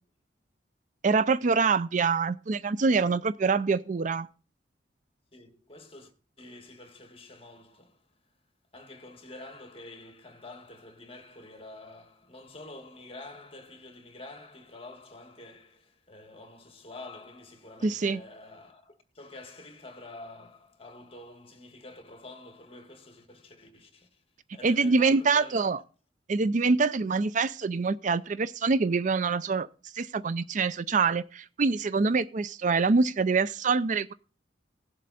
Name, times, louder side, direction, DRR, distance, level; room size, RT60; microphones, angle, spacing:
voice 1, 1.0-4.3 17.8-18.2 24.6-25.8 26.3-29.7 29.9-34.1, right 4 dB, 45° right, 0.4 m, -25 dB
voice 2, 5.3-6.1 6.4-8.1 8.7-24.2 24.5-25.6, left 2 dB, 30° left, 1.9 m, -47 dB
17.0 x 7.5 x 4.2 m
head